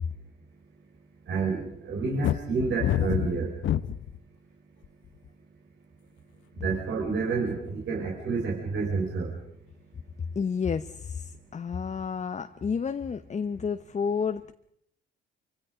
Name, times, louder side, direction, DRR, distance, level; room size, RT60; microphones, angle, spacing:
voice 1, 1.3-3.5 6.5-9.3, right 4 dB, 70° right, -2 dB, 4.9 m, -29 dB
sound 1, 2.2-4.2 4.8-5.3, left 11 dB, 70° left, 0.9 m, -27 dB
voice 2, 10.3-14.5, left 6 dB, 35° left, 9 dB, 1.0 m, -30 dB
26.0 x 25.0 x 5.1 m, 0.73 s
cardioid pair, 90°, 20 cm